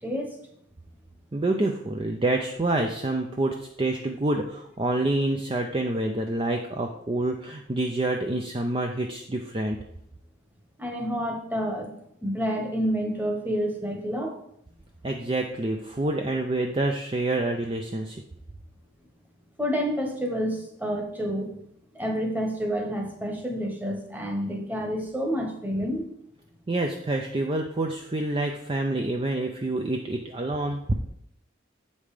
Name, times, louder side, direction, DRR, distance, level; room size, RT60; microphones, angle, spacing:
voice 1, 0.0-0.4 10.8-11.9 12.2-14.4 19.6-21.5 21.9-26.1, equal, 10° right, 2 dB, 1.2 m, -29 dB
voice 2, 1.3-9.8 15.0-18.2 26.7-30.9, right 2 dB, 25° right, 3 dB, 0.5 m, -27 dB
7.8 x 5.4 x 4.9 m, 0.72 s
head